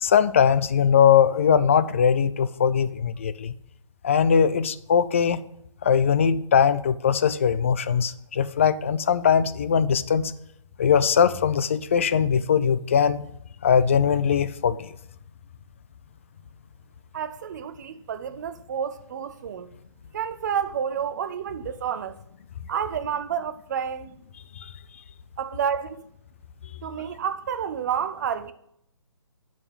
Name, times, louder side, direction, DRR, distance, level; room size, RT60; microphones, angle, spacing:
voice 1, 0.0-3.5 4.0-5.4 5.8-10.3 10.8-13.2 13.6-14.9 24.6-24.7, left 7 dB, 25° left, 0.3 m, -21 dB
voice 2, 17.1-19.7 20.1-22.2 22.7-24.1 25.4-26.0 26.8-28.5, right 8 dB, 35° right, 0.7 m, -30 dB
11.0 x 5.0 x 5.5 m
hypercardioid pair, 160°, 17 cm